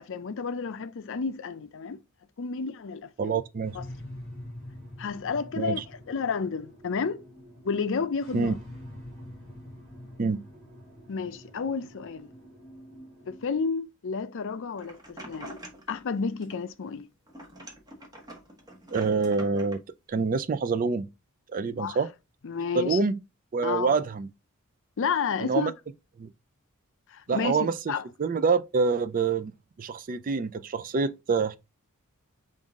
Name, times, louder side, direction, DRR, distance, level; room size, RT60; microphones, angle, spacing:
voice 1, 0.0-2.0 2.4-3.4 3.7-3.8 5.0-7.2 7.6-8.6 11.1-12.3 13.3-15.6 15.9-17.1 21.8-22.0 22.4-23.0 23.6-23.9 25.0-25.7 27.1-27.6 27.9-28.0, left 5 dB, 60° left, 0.5 m, -31 dB
voice 2, 3.2-3.8 5.6-5.8 8.3-8.5 10.2-10.4 18.9-19.8 20.1-21.1 21.5-22.1 22.7-23.2 23.5-24.3 25.4-25.7 26.2-26.3 27.3-27.9 28.2-29.5 29.8-31.6, right 4 dB, 40° right, 0.4 m, -26 dB
sound 1, 3.6-13.6, left 1 dB, 5° left, 2.7 m, -46 dB
sound 2, 14.8-16.1 16.4-17.0 17.3-19.8, right 1 dB, 20° right, 1.1 m, -45 dB
5.5 x 2.6 x 3.6 m
head